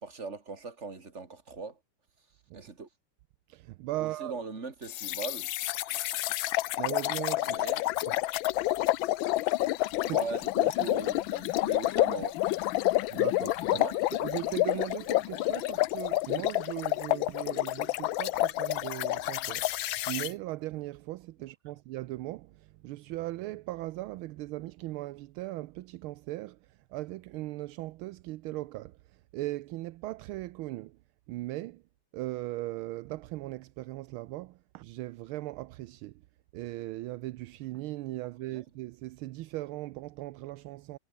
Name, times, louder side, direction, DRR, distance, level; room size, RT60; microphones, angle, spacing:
voice 1, 0.0-1.8 2.5-2.9 4.0-5.5 5.9-6.0 7.4-7.8 10.0-12.6 13.7-14.0 38.5-38.6, right 4 dB, 30° right, 3.0 m, -40 dB
voice 2, 3.5-4.3 6.8-7.6 8.1-8.2 10.0-10.2 13.1-13.7 14.2-31.0 31.3-31.8 32.1-36.2 36.5-41.0, right 17 dB, 80° right, 1.4 m, -38 dB
sound 1, 4.9-20.3, left 16 dB, 75° left, 1.3 m, -29 dB
omnidirectional pair, 2.4 m